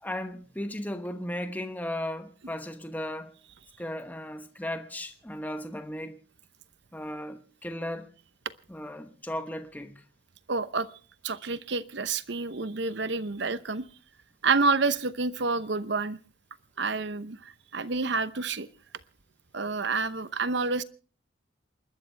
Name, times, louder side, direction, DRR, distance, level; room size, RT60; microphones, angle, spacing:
voice 1, 0.0-3.3 3.8-6.2 6.9-8.1 8.7-10.0, left 1 dB, 10° left, 1.0 m, -36 dB
voice 2, 10.5-10.9 11.2-13.8 14.4-16.2 16.8-18.7 19.5-20.8, right 4 dB, 60° right, 0.8 m, -28 dB
28.5 x 12.5 x 3.4 m
head